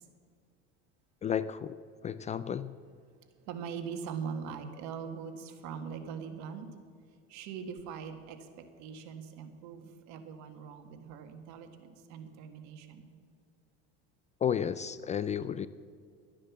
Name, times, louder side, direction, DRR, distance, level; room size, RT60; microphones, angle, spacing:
voice 1, 1.2-1.7 2.0-2.7 14.4-15.7, left 8 dB, 25° left, 15 dB, 0.3 m, -32 dB
voice 2, 3.5-6.7 7.3-13.1, right 6 dB, 65° right, 6 dB, 1.7 m, -42 dB
12.5 x 9.8 x 7.2 m, 2.2 s
supercardioid pair, 115°, 30 cm